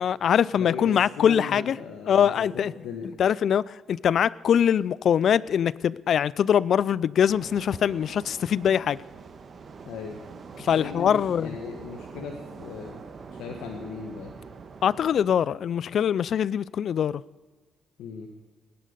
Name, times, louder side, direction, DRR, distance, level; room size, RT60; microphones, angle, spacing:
voice 1, 0.0-1.8 2.1-2.7 3.2-9.0 10.6-11.5 14.8-17.2, left 8 dB, 60° left, 0.4 m, -23 dB
voice 2, 0.5-3.1 9.8-10.2 10.6-13.0 13.3-14.3 18.0-18.3, left 5 dB, 85° left, 1.6 m, -37 dB
sound 1, 7.3-15.3, right 5 dB, 45° right, 1.7 m, -44 dB
18.5 x 10.5 x 6.8 m
cardioid pair, 90°, 0 cm